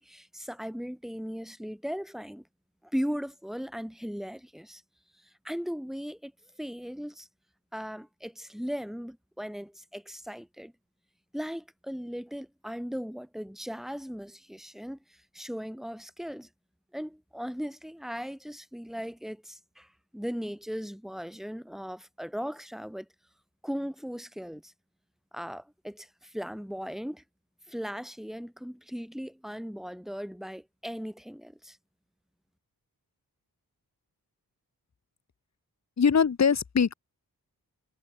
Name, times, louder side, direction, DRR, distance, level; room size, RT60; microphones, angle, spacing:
voice 1, 0.0-2.4 2.8-4.8 5.2-6.3 6.6-7.3 7.7-10.7 11.3-16.5 16.9-23.1 23.6-24.7 25.3-27.2 27.7-31.8, equal, ahead, 3.2 m, -38 dB
voice 2, 36.0-36.9, left 6 dB, 45° left, 1.0 m, -22 dB
wide cardioid pair, 100°, 37 cm